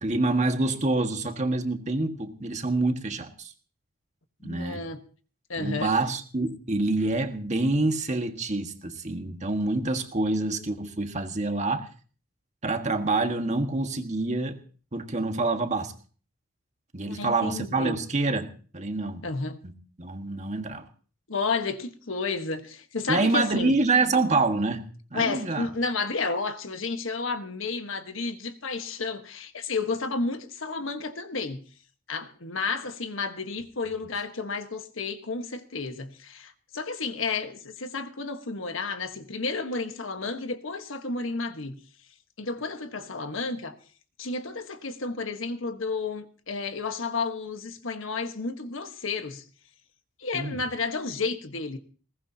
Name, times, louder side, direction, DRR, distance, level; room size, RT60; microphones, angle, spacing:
voice 1, 0.0-3.5 4.4-4.8 5.6-11.9 12.6-14.6 14.9-15.9 16.9-19.3 19.6-19.7 20.0-20.9 23.1-24.8 25.1-25.7 50.3-50.6, right 2 dB, 35° right, 1.6 m, -26 dB
voice 2, 4.4-5.0 5.5-5.9 17.1-18.0 19.2-19.6 21.3-23.7 25.1-31.6 32.1-41.8 42.4-43.7 44.2-49.4 50.2-51.8, left 4 dB, 70° left, 1.4 m, -31 dB
21.0 x 18.5 x 2.8 m
head